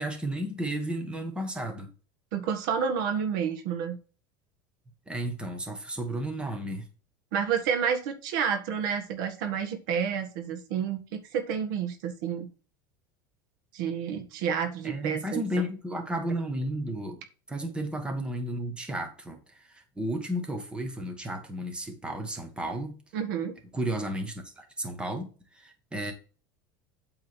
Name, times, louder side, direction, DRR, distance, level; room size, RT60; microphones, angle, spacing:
voice 1, 0.0-1.9 5.1-6.9 14.8-17.2 17.5-22.9 23.7-25.3 25.5-26.1, right 1 dB, 10° right, 1.5 m, -33 dB
voice 2, 2.3-4.0 7.3-12.5 13.7-15.6 23.1-23.6, right 7 dB, 75° right, 1.6 m, -30 dB
8.2 x 3.7 x 6.2 m
supercardioid pair, 135°, 11 cm